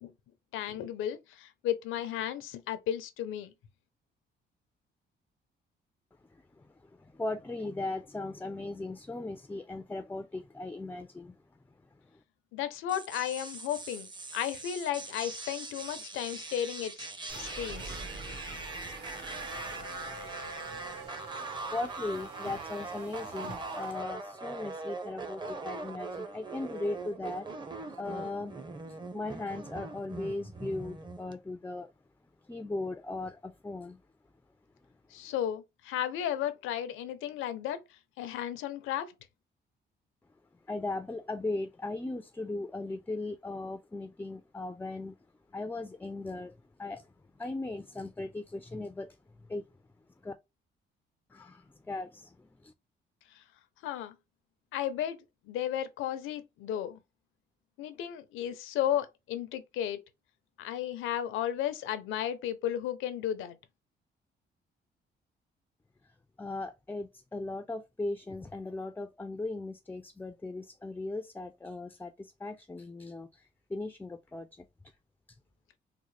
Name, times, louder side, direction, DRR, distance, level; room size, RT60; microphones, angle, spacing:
voice 1, 0.5-3.5 12.5-16.9 17.4-18.0 35.1-37.8 38.2-39.1 53.8-54.1 54.7-55.2 55.5-57.0 57.8-60.0 60.6-63.6, left 10 dB, 90° left, 0.6 m, -34 dB
voice 2, 6.3-11.4 12.1-12.2 21.1-27.5 27.9-28.6 28.9-31.9 32.5-34.0 40.7-45.1 45.5-47.1 47.4-49.6 50.2-50.3 51.3-52.7 66.4-74.7, left 2 dB, 10° left, 0.3 m, -38 dB
sound 1, 12.9-31.3, right 3 dB, 25° right, 0.7 m, -42 dB
sound 2, 17.3-24.0, right 3 dB, 60° right, 1.3 m, -45 dB
3.7 x 2.0 x 3.2 m
cardioid pair, 90°, 20 cm